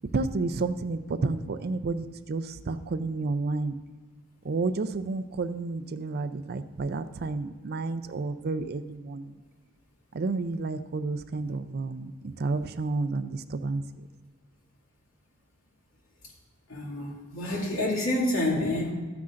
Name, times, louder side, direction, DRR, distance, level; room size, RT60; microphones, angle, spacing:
voice 1, 0.1-3.8 4.4-9.3 10.1-12.1 12.4-14.1, right 3 dB, 50° right, 12 dB, 0.4 m, -31 dB
voice 2, 16.7-18.9, left 1 dB, 70° left, -3 dB, 2.5 m, -28 dB
13.5 x 9.5 x 2.5 m, 1.4 s
head